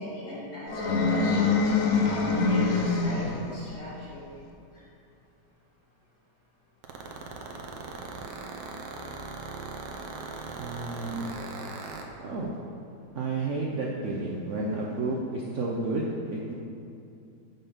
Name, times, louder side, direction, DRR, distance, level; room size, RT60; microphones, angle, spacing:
voice 1, 0.0-4.3 4.7-4.8, equal, 40° left, -8 dB, 2.4 m, -39 dB
sound 1, 0.7-3.6, left 4 dB, 60° left, 1.1 m, -24 dB
sound 2, 6.8-12.0, right 4 dB, 90° right, 1.5 m, -38 dB
voice 2, 10.6-11.3 12.2-12.5 13.1-16.5, right 2 dB, 60° right, -3 dB, 0.8 m, -31 dB
6.9 x 5.6 x 5.6 m, 2.6 s
omnidirectional pair, 1.8 m